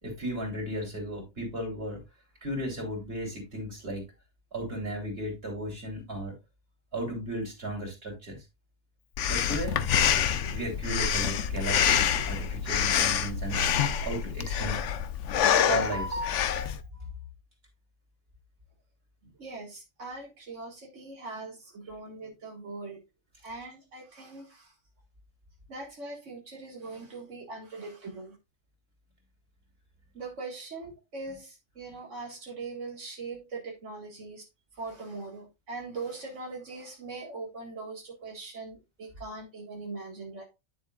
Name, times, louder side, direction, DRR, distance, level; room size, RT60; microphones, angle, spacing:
voice 1, 0.0-2.0 2.4-4.0 4.5-6.3 6.9-8.4 9.3-9.9 10.5-14.8 15.6-16.7, equal, 55° right, 0 dB, 3.5 m, -35 dB
Breathing, 9.2-16.8, left 8 dB, 80° left, 1.0 m, -27 dB
voice 2, 19.2-23.0 23.4-24.7 25.7-28.4 30.1-34.5 34.7-40.4, right 3 dB, 85° right, -2 dB, 2.1 m, -41 dB
9.7 x 7.3 x 2.3 m, 0.24 s
omnidirectional pair, 1.2 m